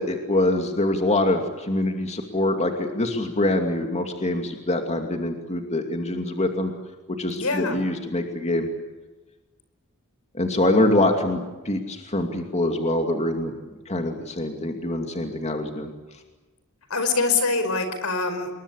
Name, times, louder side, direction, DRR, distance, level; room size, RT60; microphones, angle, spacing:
voice 1, 0.0-6.7 7.1-8.7 10.3-11.4 11.6-13.5 13.9-15.9, left 1 dB, 30° left, 4 dB, 2.6 m, -24 dB
voice 2, 7.3-7.8 16.9-18.5, left 3 dB, 75° left, 9 dB, 5.1 m, -24 dB
27.5 x 22.5 x 8.4 m, 1.2 s
head